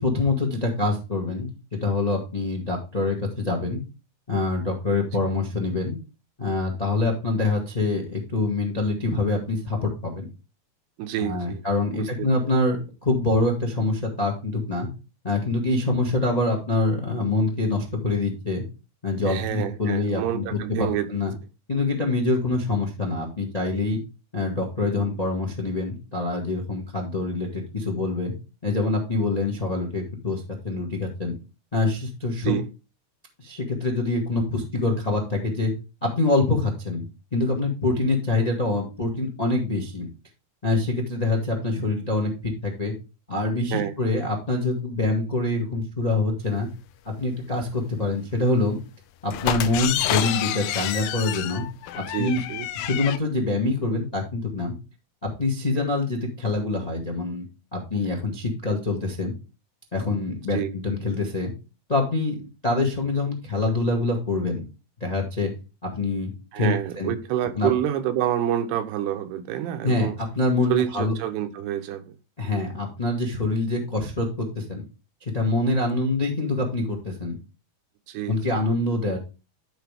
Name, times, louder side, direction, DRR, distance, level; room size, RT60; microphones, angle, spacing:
voice 1, 0.0-3.8 4.3-6.0 6.4-10.3 11.2-14.9 15.2-18.6 19.0-21.3 21.7-24.0 24.3-28.3 28.6-31.3 31.7-32.5 33.4-35.7 36.0-37.0 37.3-40.1 40.6-42.9 43.3-46.7 47.0-48.8 49.2-51.6 52.0-52.4 52.7-54.7 55.2-57.4 57.7-59.3 59.9-61.5 61.9-64.6 65.0-65.5 65.8-67.1 67.5-67.7 69.8-71.1 72.4-74.3 74.5-74.8 75.2-77.4 78.3-79.2, left 2 dB, 35° left, 0.6 m, -25 dB
voice 2, 11.0-11.6 11.9-12.1 19.2-21.1 32.4-32.7 43.7-43.9 52.0-52.7 60.5-60.7 66.5-70.2 70.7-72.2 78.1-78.6, right 11 dB, 85° right, 2.9 m, -27 dB
sound 1, 49.3-53.2, left 12 dB, 80° left, 2.1 m, -28 dB
12.0 x 5.1 x 3.5 m
omnidirectional pair, 4.6 m